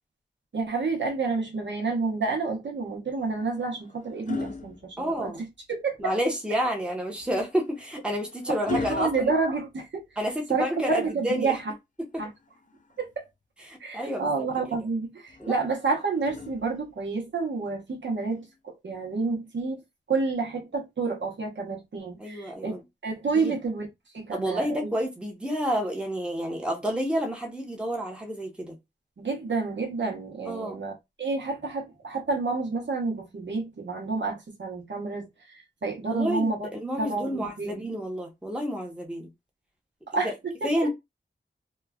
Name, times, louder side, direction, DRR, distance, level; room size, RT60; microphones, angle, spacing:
voice 1, 0.5-6.0 8.7-10.0 10.5-10.6 10.9-11.6 12.2-12.3 13.0-13.1 13.8-18.5 18.8-19.8 20.1-22.7 23.0-23.9 24.1-24.9 29.2-30.9 31.2-36.7 37.0-37.9 40.1-40.7, right 4 dB, 70° right, 0.9 m, -29 dB
sound 1, 3.1-5.6 7.2-10.4 12.1-13.3 15.3-17.1 18.3-18.5, left 5 dB, 40° left, 0.4 m, -40 dB
voice 2, 5.0-5.4 6.0-9.3 10.2-11.6 12.1-12.2 13.7-14.5 15.4-15.6 22.2-22.8 23.3-23.6 24.3-28.8 30.5-30.8 36.1-39.3 40.1-40.3 40.6-40.9, equal, 5° right, 0.8 m, -30 dB
3.0 x 2.2 x 2.3 m
wide cardioid pair, 100°, 19 cm